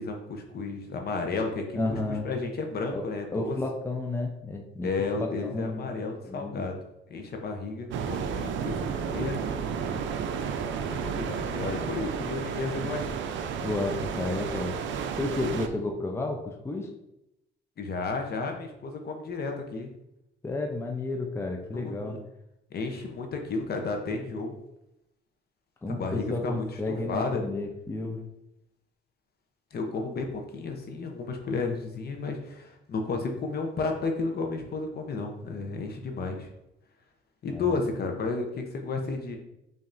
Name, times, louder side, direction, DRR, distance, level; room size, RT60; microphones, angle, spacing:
voice 1, 0.0-2.0 2.2-3.6 4.8-6.8 7.1-9.5 10.9-13.0 17.8-19.9 21.7-22.2 22.7-24.5 25.9-27.4 29.7-36.5 37.4-39.4, left 3 dB, 50° left, 4 dB, 0.7 m, -32 dB
voice 2, 1.7-2.3 2.9-3.0 3.3-4.9 5.2-6.7 13.6-14.8 15.2-16.9 20.4-22.2 25.8-28.2 37.5-37.8, left 2 dB, 10° left, 2 dB, 0.5 m, -32 dB
sound 1, 7.9-15.7, right 6 dB, 70° right, 0.4 m, -32 dB
5.3 x 2.6 x 2.5 m, 0.86 s
cardioid pair, 90°, 20 cm